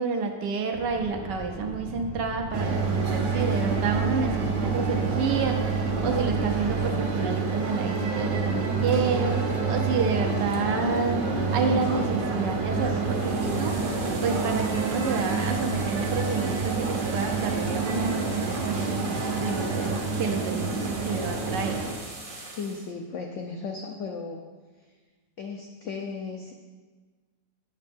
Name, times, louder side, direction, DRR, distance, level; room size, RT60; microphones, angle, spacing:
voice 1, 0.0-21.8, right 5 dB, 75° right, 4 dB, 1.3 m, -29 dB
sound 1, 0.7-6.9, left 1 dB, 25° left, 2.6 m, -38 dB
sound 2, 2.5-21.9, right 4 dB, 55° right, 0.5 m, -27 dB
sound 3, 13.0-22.9, right 2 dB, 35° right, 1.0 m, -41 dB
voice 2, 22.5-24.5 25.4-26.5, left 4 dB, 70° left, 3 dB, 0.7 m, -35 dB
8.2 x 6.7 x 3.5 m, 1.4 s
omnidirectional pair, 1.9 m